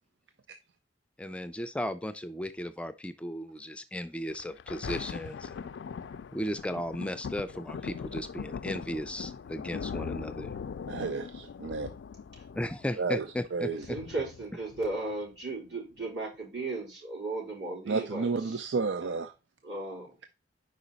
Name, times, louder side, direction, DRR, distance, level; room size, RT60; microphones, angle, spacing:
voice 1, 1.2-5.6 6.3-10.5 12.5-14.0, left 1 dB, 5° left, 0.3 m, -35 dB
Thunder, 4.3-15.3 16.0-16.1, left 6 dB, 85° left, 0.4 m, -40 dB
voice 2, 10.9-11.9 13.0-13.8 17.9-19.3, right 4 dB, 90° right, 0.5 m, -31 dB
voice 3, 13.9-18.6 19.6-20.1, right 2 dB, 75° right, 4.1 m, -36 dB
5.1 x 5.0 x 4.0 m
head